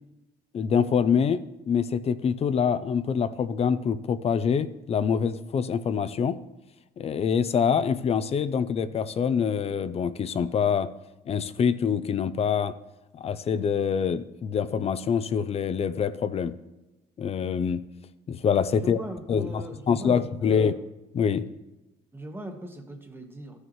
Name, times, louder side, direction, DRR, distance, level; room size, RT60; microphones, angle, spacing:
voice 1, 0.5-6.4 7.0-10.9 11.3-12.7 13.1-16.6 17.2-17.8 18.3-19.0 19.3-20.7 21.1-21.5, left 7 dB, 35° left, 14 dB, 0.5 m, -25 dB
voice 2, 18.7-20.8 22.1-23.6, right 1 dB, 15° right, 5 dB, 1.2 m, -40 dB
14.5 x 6.4 x 3.1 m, 1.0 s
cardioid pair, 110°, 17 cm